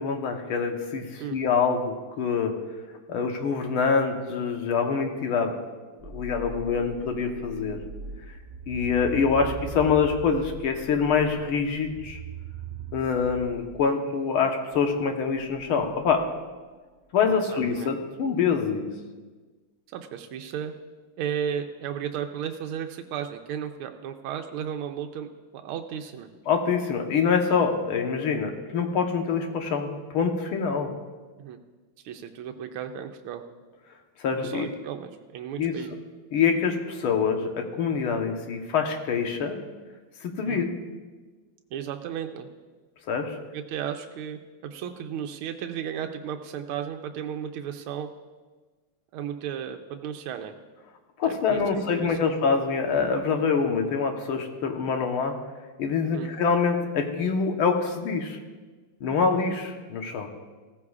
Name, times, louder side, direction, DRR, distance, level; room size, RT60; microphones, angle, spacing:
voice 1, 0.0-2.5 3.1-5.5 6.0-7.8 8.3-8.4 8.7-12.2 12.9-16.3 17.1-18.9 26.5-30.9 34.2-34.7 35.6-35.8 36.3-39.6 40.2-40.8 43.1-43.4 51.2-55.4 55.8-58.4 59.0-60.3, left 5 dB, 80° left, 4 dB, 1.9 m, -25 dB
sound 1, 6.0-13.8 14.7-16.5, right 4 dB, 35° right, 1.7 m, -40 dB
voice 2, 17.3-17.9 19.9-20.7 21.2-25.3 25.5-26.3 31.4-31.6 32.0-33.4 34.4-35.9 40.4-40.7 41.7-42.5 43.5-48.1 49.1-50.5 51.2-52.3 56.1-56.3, right 8 dB, 90° right, 5 dB, 1.5 m, -34 dB
16.5 x 14.5 x 2.4 m, 1.3 s
omnidirectional pair, 2.3 m